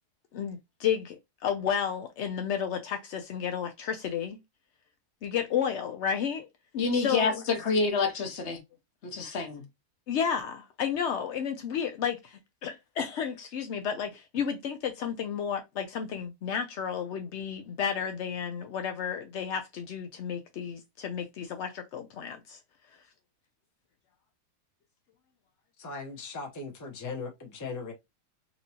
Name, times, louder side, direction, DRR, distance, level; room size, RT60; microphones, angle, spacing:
voice 1, 0.3-1.2 1.4-4.4 5.2-6.5 6.9-7.4 10.1-22.6, left 7 dB, 85° left, 0.6 m, -32 dB
voice 2, 6.7-8.6 9.0-9.6, left 4 dB, 55° left, 0.8 m, -28 dB
voice 3, 25.8-27.9, left 4 dB, 20° left, 0.5 m, -38 dB
4.0 x 2.6 x 2.8 m
omnidirectional pair, 1.7 m